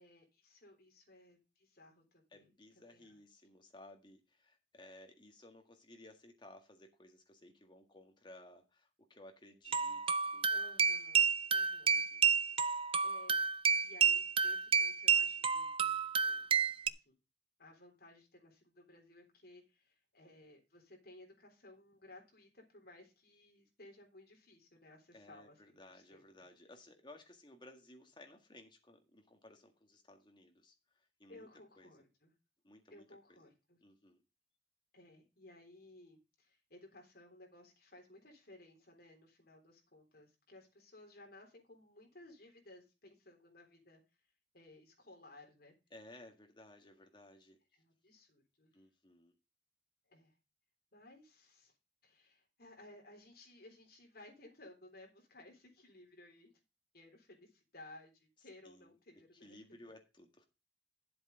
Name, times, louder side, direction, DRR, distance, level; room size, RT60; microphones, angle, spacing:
voice 1, 0.0-3.2 10.5-12.0 12.4-12.5 13.0-16.5 16.8-17.2 17.6-26.2 31.3-32.3 32.9-33.8 34.9-44.0 44.5-45.7 47.7-48.7 50.1-50.3 50.9-51.7 52.0-56.5 56.9-59.6, left 2 dB, 60° left, 1 dB, 3.6 m, -59 dB
voice 2, 2.3-10.5 11.9-12.2 25.1-30.7 31.2-31.5 31.8-31.9 32.6-33.4 33.8-34.2 45.9-47.6 48.7-49.3 58.6-58.9 59.4-60.4, left 1 dB, 25° left, 4 dB, 1.7 m, -58 dB
sound 1, 9.7-16.9, right 6 dB, 30° right, 0.4 m, -30 dB
10.0 x 7.8 x 3.9 m, 0.27 s
head